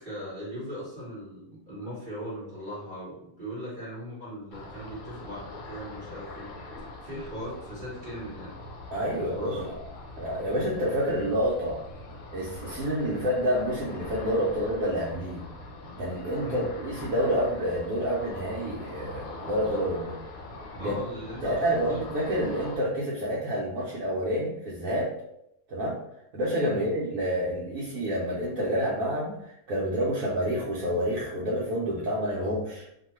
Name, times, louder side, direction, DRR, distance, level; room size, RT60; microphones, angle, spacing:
voice 1, 0.0-6.5 7.0-8.5 9.2-9.7 16.4-16.6 20.8-22.0 26.7-26.9, equal, 35° right, -11 dB, 1.4 m, -39 dB
Ocean, 4.5-22.8, left 2 dB, 70° left, 1.0 m, -42 dB
voice 2, 8.9-9.8 10.2-11.8 12.3-15.4 16.0-20.2 20.7-20.9 21.4-25.1 25.7-26.0 26.3-32.9, equal, 70° right, -6 dB, 1.0 m, -28 dB
2.8 x 2.2 x 3.0 m, 0.79 s
omnidirectional pair, 1.7 m